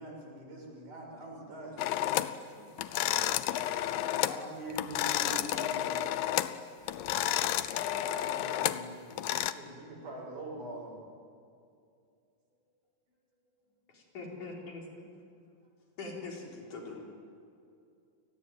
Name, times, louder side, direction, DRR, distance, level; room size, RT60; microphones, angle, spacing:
voice 1, 0.0-1.8 3.7-6.0 7.8-11.1, right 1 dB, 60° right, -1 dB, 8.2 m, -44 dB
sound 1, 1.8-2.4 2.8-4.4 4.7-6.6 6.9-9.5, left 13 dB, 80° left, 2.5 m, -31 dB
voice 2, 2.1-4.0 4.4-4.5 5.1-5.7, equal, 25° right, 2 dB, 3.3 m, -56 dB
voice 3, 13.9-14.8 16.0-17.0, left 3 dB, 60° left, -1 dB, 5.8 m, -42 dB
29.5 x 19.5 x 9.4 m, 2.5 s
omnidirectional pair, 4.1 m